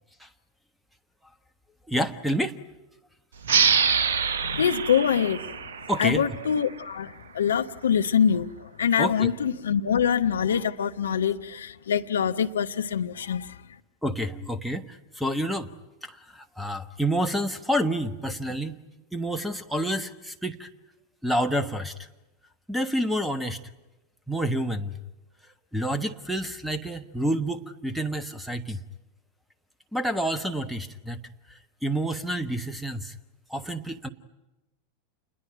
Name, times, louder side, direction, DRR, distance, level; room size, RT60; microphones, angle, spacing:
voice 1, 1.9-2.6 5.9-6.4 9.0-9.3 14.0-15.7 16.0-18.8 19.1-20.7 21.2-21.9 22.7-23.6 24.3-24.9 25.7-28.8 29.9-31.2 31.8-33.1 33.5-34.1, equal, ahead, 1.3 m, -28 dB
sound 1, 3.4-6.7, right 6 dB, 60° right, 1.0 m, -25 dB
voice 2, 4.4-5.4 6.0-13.6, left 8 dB, 65° left, 0.9 m, -25 dB
28.5 x 21.5 x 9.1 m
figure-of-eight pair, 90°, 0 cm